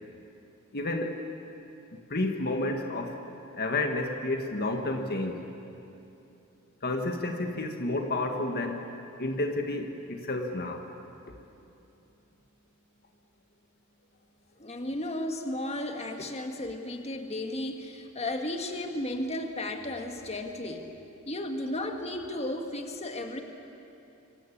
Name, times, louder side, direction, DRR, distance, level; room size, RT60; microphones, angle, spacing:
voice 1, 0.7-1.2 1.9-3.2 3.5-5.5 6.8-8.9 9.2-10.9, left 2 dB, 50° left, 4 dB, 1.7 m, -31 dB
voice 2, 14.6-20.9 21.3-23.4, left 1 dB, 30° left, 5 dB, 1.9 m, -34 dB
26.5 x 24.5 x 8.7 m, 2.9 s
head